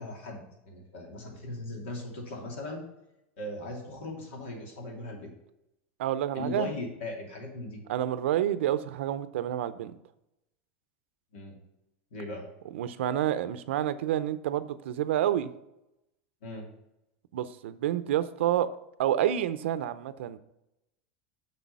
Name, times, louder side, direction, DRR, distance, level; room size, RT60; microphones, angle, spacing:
voice 1, 0.0-2.8 3.4-5.3 6.3-7.8 11.3-11.6 12.1-12.4 16.4-16.7, left 2 dB, 80° left, 1 dB, 2.7 m, -39 dB
voice 2, 6.0-6.7 7.9-10.0 12.7-15.5 17.3-18.7 19.0-20.4, right 11 dB, 85° right, 13 dB, 0.6 m, -28 dB
6.7 x 6.2 x 5.4 m, 0.87 s
supercardioid pair, 130°, 6 cm